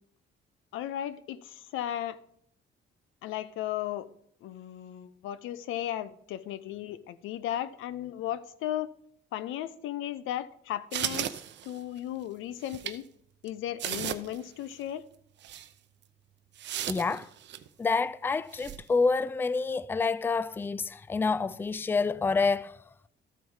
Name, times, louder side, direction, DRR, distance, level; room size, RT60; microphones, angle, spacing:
voice 1, 0.7-2.2 3.2-4.1 4.4-8.9 9.3-13.0 13.4-15.0, left 12 dB, 90° left, 0.6 m, -35 dB
sound 1, 10.9-12.0 12.6-13.0 13.5-13.6 13.8-14.4 14.7-14.8 15.4-15.7 16.6-17.7 18.5-18.8, right 11 dB, 65° right, 0.6 m, -35 dB
voice 2, 16.9-17.3 17.8-22.8, left 4 dB, 10° left, 0.3 m, -28 dB
12.5 x 4.5 x 5.5 m
cardioid pair, 90°, 20 cm